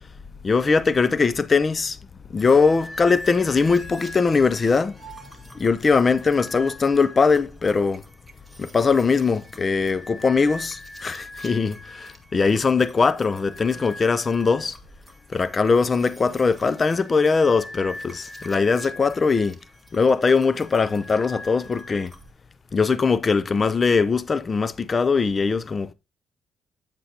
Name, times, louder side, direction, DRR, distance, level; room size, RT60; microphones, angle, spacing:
voice 1, 0.4-2.0 2.3-5.0 5.5-8.0 8.6-14.8 15.3-19.6 19.9-22.1 22.7-25.9, left 4 dB, 30° left, 0.5 m, -21 dB
sound 1, 2.4-22.3, left 1 dB, 5° left, 1.5 m, -43 dB
8.7 x 7.9 x 2.8 m
cardioid pair, 125°, 0 cm